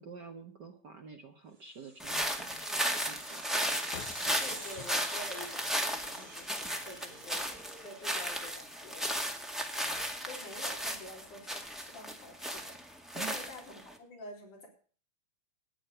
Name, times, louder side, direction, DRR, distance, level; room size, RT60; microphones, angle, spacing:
voice 1, 0.0-3.8 13.1-13.5, right 6 dB, 55° right, 5 dB, 1.3 m, -49 dB
sound 1, 1.7-8.5, right 2 dB, 20° right, 1.6 m, -51 dB
sound 2, 2.0-13.9, equal, ahead, 1.2 m, -35 dB
sound 3, 3.9-6.6, left 8 dB, 65° left, 1.4 m, -50 dB
voice 2, 4.4-9.1 9.4-12.7 13.1-14.7, left 1 dB, 85° left, 0 dB, 5.5 m, -49 dB
12.5 x 9.5 x 6.7 m, 0.42 s
omnidirectional pair, 3.5 m